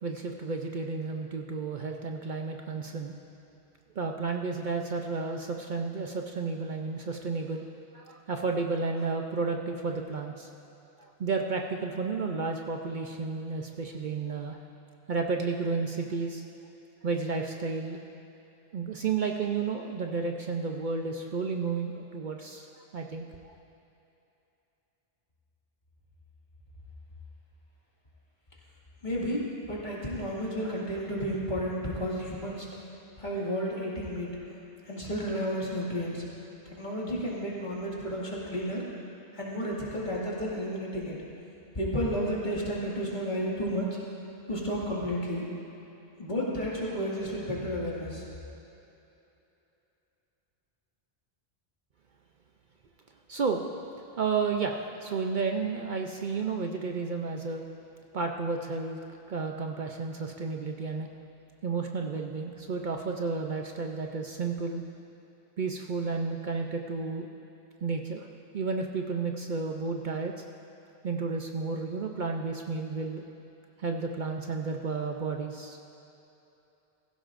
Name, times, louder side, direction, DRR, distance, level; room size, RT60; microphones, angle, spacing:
voice 1, 0.0-3.1 4.0-7.7 7.9-10.5 11.2-14.6 15.1-16.4 17.0-18.0 18.7-23.5 53.3-53.7 54.2-57.6 58.1-59.0 59.3-61.1 61.6-64.8 65.6-67.3 67.8-68.3 68.5-70.3 71.0-73.2 73.8-75.8, right 4 dB, 55° right, 3 dB, 0.7 m, -32 dB
voice 2, 29.0-32.7 33.2-34.3 34.8-36.2 36.7-38.8 39.3-41.2 41.8-43.9 44.5-45.4 46.2-48.2, equal, 45° left, -5 dB, 2.3 m, -32 dB
16.5 x 15.5 x 2.5 m, 2.9 s
omnidirectional pair, 1.1 m